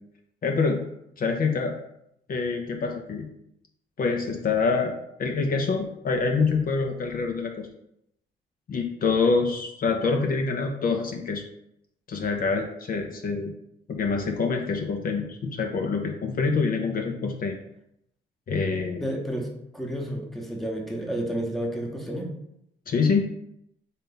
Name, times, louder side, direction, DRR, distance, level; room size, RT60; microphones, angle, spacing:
voice 1, 0.4-0.8 1.2-1.7 2.3-3.3 4.0-7.7 8.7-11.4 12.1-13.5 13.9-17.6 18.5-19.0 22.9-23.2, left 4 dB, 45° left, 3 dB, 0.6 m, -26 dB
voice 2, 19.0-22.3, right 1 dB, ahead, 0 dB, 0.9 m, -31 dB
4.1 x 3.2 x 3.8 m, 0.77 s
cardioid pair, 90°, 20 cm